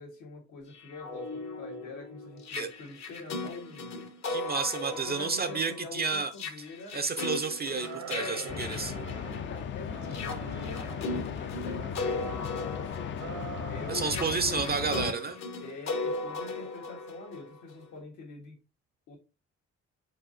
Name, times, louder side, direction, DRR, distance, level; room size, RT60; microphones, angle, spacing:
voice 1, 0.0-4.1 4.9-7.0 8.1-8.6 9.3-13.2 13.7-15.1 15.6-18.6 19.1-19.2, left 3 dB, 85° left, 1.8 m, -44 dB
sound 1, 0.7-9.6 10.0-17.8, left 3 dB, 60° left, 0.9 m, -38 dB
voice 2, 4.3-6.3 6.9-8.9 13.9-15.3, right 4 dB, 35° right, 0.4 m, -31 dB
sound 2, 7.7-9.5 9.8-11.3 11.7-12.8 13.2-14.3 14.6-15.4, right 6 dB, 75° right, 1.0 m, -44 dB
sound 3, 8.5-15.1, left 8 dB, 40° left, 0.4 m, -37 dB
4.8 x 4.2 x 2.5 m
cardioid pair, 90°, 30 cm